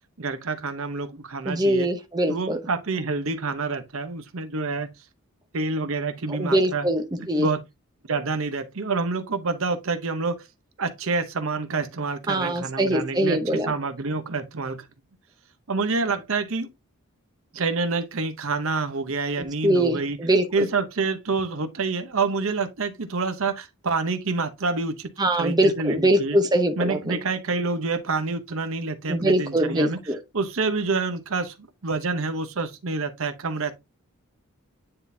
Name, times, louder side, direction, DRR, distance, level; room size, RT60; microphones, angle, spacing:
voice 1, 0.2-1.9 2.3-4.9 5.5-6.9 7.2-7.6 8.1-10.4 10.8-14.8 15.7-16.7 17.5-20.2 20.5-25.1 25.4-26.4 26.8-30.0 30.3-31.5 31.8-33.8, right 4 dB, 65° right, 0.8 m, -27 dB
voice 2, 1.5-2.6 6.3-7.5 12.3-13.7 19.6-20.7 25.2-27.2 29.1-30.2, right 1 dB, 20° right, 0.8 m, -23 dB
9.6 x 3.8 x 2.6 m
head